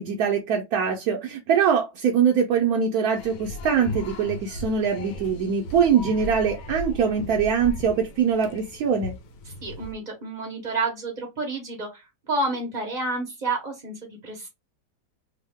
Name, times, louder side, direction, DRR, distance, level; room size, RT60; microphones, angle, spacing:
voice 1, 0.0-9.1, right 7 dB, 75° right, 0.8 m, -23 dB
sound 1, 3.1-9.9, left 1 dB, 80° left, 1.5 m, -37 dB
voice 2, 9.6-14.5, right 2 dB, 50° right, 0.5 m, -30 dB
3.5 x 2.0 x 3.5 m
omnidirectional pair, 2.2 m